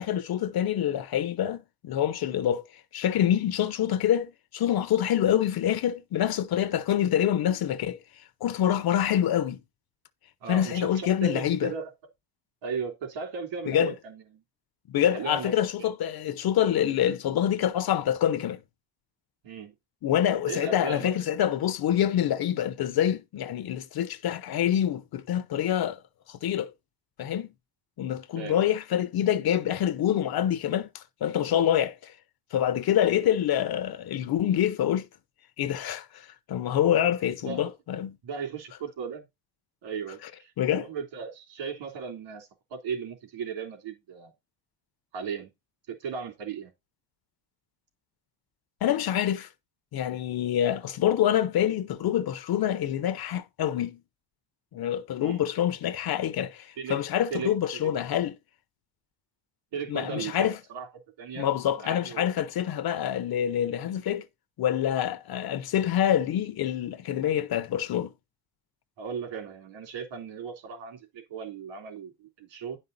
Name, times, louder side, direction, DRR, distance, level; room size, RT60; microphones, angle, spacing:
voice 1, 0.0-2.6 2.9-8.0 8.4-9.6 10.5-11.7 13.7-13.9 14.9-18.6 20.0-26.0 26.3-26.7 27.2-27.5 28.0-32.1 32.5-35.1 35.6-38.1 40.6-40.9 48.8-49.5 49.9-54.0 54.7-58.3 59.9-60.5 61.4-64.2 64.6-68.1, left 10 dB, 50° left, 0.9 m, -26 dB
voice 2, 10.4-11.9 12.6-14.4 15.0-15.9 19.4-19.8 20.5-21.2 28.4-28.7 37.4-37.7 38.2-39.3 39.8-44.3 45.1-45.5 45.9-46.7 55.2-55.4 56.8-57.0 57.3-57.8 59.7-60.9 61.2-62.3 69.0-72.8, right 6 dB, 65° right, 3.5 m, -37 dB
10.5 x 5.5 x 4.1 m
cardioid pair, 150°, 48 cm